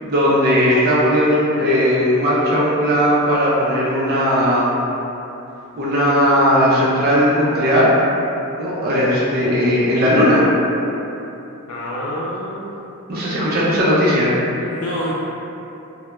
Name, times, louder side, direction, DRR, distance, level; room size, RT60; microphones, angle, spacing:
voice 1, 0.0-4.7 5.7-7.9 8.6-10.4 13.1-14.4, equal, 45° right, -7 dB, 0.4 m, -17 dB
voice 2, 11.7-12.8 14.6-15.1, equal, 90° left, -6 dB, 0.4 m, -27 dB
2.3 x 2.0 x 3.0 m, 2.9 s
head